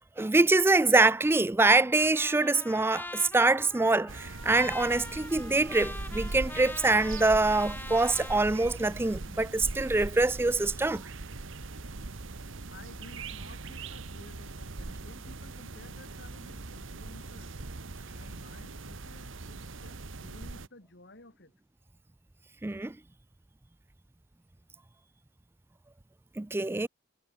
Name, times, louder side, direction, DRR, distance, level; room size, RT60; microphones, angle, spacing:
voice 1, 0.2-11.0 22.6-22.9 26.4-26.9, right 2 dB, 10° right, 0.4 m, -24 dB
Trumpet, 1.7-8.4, left 2 dB, 10° left, 7.2 m, -43 dB
sound 1, 4.1-20.7, right 3 dB, 65° right, 1.3 m, -41 dB
voice 2, 12.7-17.5 18.1-21.5, left 2 dB, 55° left, 7.3 m, -53 dB
head